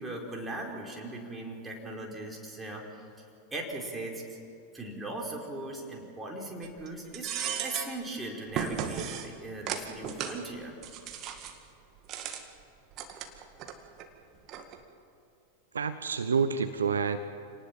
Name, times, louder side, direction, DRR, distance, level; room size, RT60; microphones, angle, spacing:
voice 1, 0.0-3.1 3.5-4.4 4.7-7.3 7.6-10.8, right 2 dB, 10° right, 0 dB, 4.9 m, -39 dB
sound 1, 6.6-6.9 7.1-8.0 8.5-9.3 9.7-10.4 10.8-11.6 12.0-12.4 12.9-13.7 14.0-14.1 14.5-14.8, right 8 dB, 35° right, 2.1 m, -35 dB
voice 2, 15.7-17.2, right 6 dB, 70° right, 10 dB, 1.0 m, -28 dB
28.0 x 19.0 x 7.5 m, 2.7 s
figure-of-eight pair, 90°, 0 cm